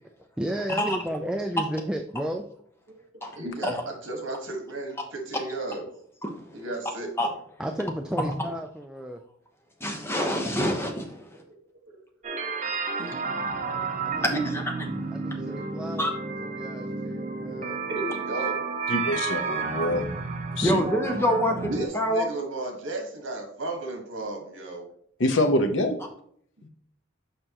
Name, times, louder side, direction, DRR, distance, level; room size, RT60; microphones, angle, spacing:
voice 1, 0.4-2.5 7.6-9.2 14.0-14.3 15.1-16.1 16.4-17.8, right 1 dB, 5° right, 4 dB, 0.3 m, -33 dB
voice 2, 3.3-5.8 6.5-7.1 11.9-12.0 12.9-13.3 13.7-13.8 17.9-18.7 21.5-24.9, right 2 dB, 75° right, 3 dB, 1.5 m, -34 dB
voice 3, 9.8-11.4 13.0-13.1 14.2-14.9 16.0-16.1 20.6-22.3, equal, 10° left, 2 dB, 0.9 m, -26 dB
sound 1, 12.2-21.9, right 4 dB, 35° right, 0.7 m, -31 dB
voice 4, 18.9-20.0 20.5-20.8 25.2-26.0 26.6-26.7, left 1 dB, 70° left, 6 dB, 0.9 m, -25 dB
6.6 x 5.2 x 2.9 m, 0.62 s
head